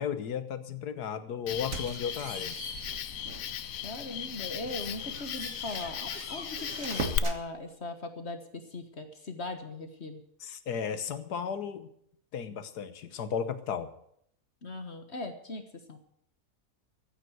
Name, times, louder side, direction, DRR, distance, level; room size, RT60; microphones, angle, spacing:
voice 1, 0.0-2.6 10.4-11.9 12.3-13.9, left 7 dB, 85° left, 11 dB, 1.6 m, -34 dB
Cricket, 1.5-7.2, left 10 dB, 65° left, 1.1 m, -37 dB
sound 1, 1.5-3.6 4.0-4.2 4.6-7.4, right 3 dB, 55° right, 1.9 m, -41 dB
voice 2, 3.8-10.2 14.6-16.0, left 2 dB, 45° left, 7 dB, 1.5 m, -39 dB
14.0 x 9.1 x 7.9 m, 0.71 s
omnidirectional pair, 1.7 m